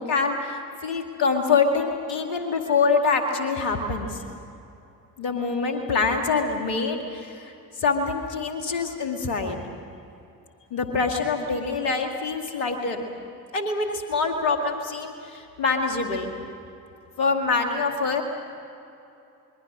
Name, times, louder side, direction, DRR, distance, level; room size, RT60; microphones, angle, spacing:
voice 1, 0.0-4.2 5.2-7.5 7.8-9.6 10.7-13.1 13.5-16.3 17.2-18.2, left 4 dB, 80° left, 4 dB, 2.2 m, -25 dB
27.0 x 21.5 x 6.1 m, 2.7 s
figure-of-eight pair, 40°, 46 cm